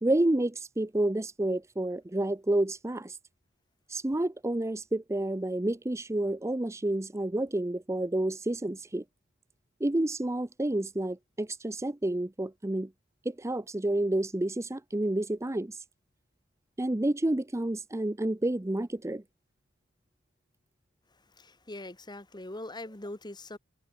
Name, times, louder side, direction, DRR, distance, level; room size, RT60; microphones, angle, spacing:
voice 1, 0.0-3.2 3.9-9.0 9.8-12.9 13.2-15.8 16.8-19.2, right 1 dB, 15° right, 0.6 m, -29 dB
voice 2, 21.4-23.6, left 1 dB, 20° left, 2.0 m, -42 dB
head